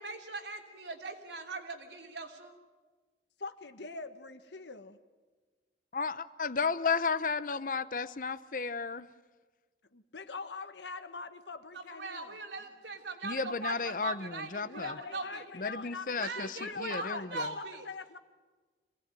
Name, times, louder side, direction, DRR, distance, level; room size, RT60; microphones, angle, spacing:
voice 1, 0.0-2.5 11.7-15.4 16.2-17.9, right 3 dB, 80° right, 3 dB, 3.1 m, -40 dB
voice 2, 3.4-5.0 9.9-12.3 14.7-18.2, left 4 dB, 80° left, 10 dB, 1.5 m, -43 dB
voice 3, 5.9-9.1 13.2-15.0 15.5-17.5, left 5 dB, 50° left, 15 dB, 0.8 m, -33 dB
25.5 x 17.5 x 9.1 m, 1.3 s
head